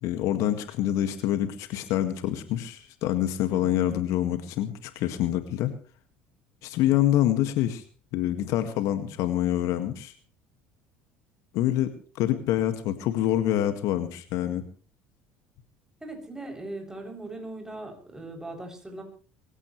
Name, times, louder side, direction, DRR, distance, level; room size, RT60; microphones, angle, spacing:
voice 1, 0.0-5.7 6.6-7.8 8.1-10.1 11.5-14.6, left 12 dB, 65° left, 10 dB, 2.0 m, -26 dB
voice 2, 3.5-4.0 16.0-19.0, right 2 dB, 10° right, 3 dB, 7.4 m, -39 dB
23.5 x 16.0 x 3.3 m, 0.40 s
hypercardioid pair, 70°, 6 cm